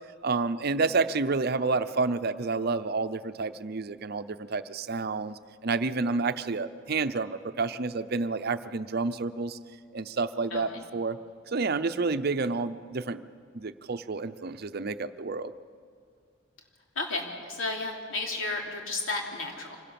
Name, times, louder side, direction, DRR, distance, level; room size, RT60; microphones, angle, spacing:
voice 1, 0.2-9.6 9.9-11.2 11.5-13.2 13.5-15.5, right 3 dB, 50° right, 11 dB, 0.7 m, -29 dB
voice 2, 10.5-10.8 16.9-19.8, left 3 dB, 90° left, 1 dB, 3.3 m, -33 dB
25.0 x 17.0 x 7.1 m, 2.2 s
head